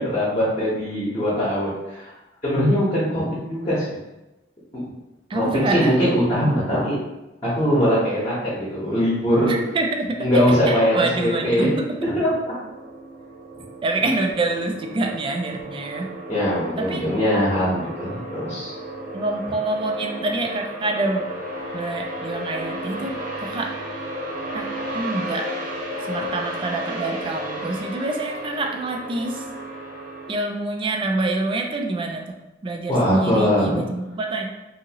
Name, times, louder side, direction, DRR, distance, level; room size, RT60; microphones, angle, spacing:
voice 1, 0.0-2.1 2.4-3.8 5.3-7.0 7.5-9.6 10.2-11.7 12.0-12.3 13.5-13.6 16.3-18.7 32.9-33.8, equal, 25° left, -8 dB, 0.8 m, -21 dB
voice 2, 5.3-5.9 9.5-10.3 10.7-11.9 13.8-16.1 16.8-17.0 19.1-21.3 21.7-23.8 24.5-24.6 24.9-25.5 26.0-29.4 30.3-32.3 32.6-34.5, right 2 dB, 25° right, 3 dB, 0.3 m, -26 dB
sound 1, 10.6-30.3, right 1 dB, 45° right, 0.7 m, -34 dB
2.8 x 2.7 x 2.8 m, 1.0 s
head